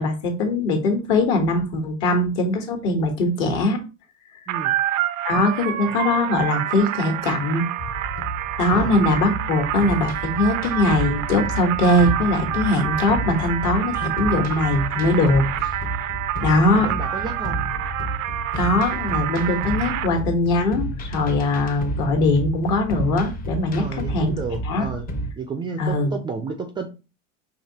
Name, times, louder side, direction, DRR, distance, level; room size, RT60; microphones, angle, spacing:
voice 1, 0.0-3.8 5.2-7.7 8.6-15.8 16.4-16.9 18.6-24.3 24.6-24.9 25.8-26.1, left 2 dB, 60° left, 1.3 m, -21 dB
sound 1, 4.5-20.1, right 13 dB, 80° right, 0.5 m, -28 dB
sound 2, 7.9-25.3, right 1 dB, 20° left, 0.6 m, -31 dB
voice 2, 16.6-17.6 23.8-25.1 25.4-26.9, right 5 dB, 15° right, 0.3 m, -31 dB
4.8 x 2.7 x 2.8 m
hypercardioid pair, 95°, 39 cm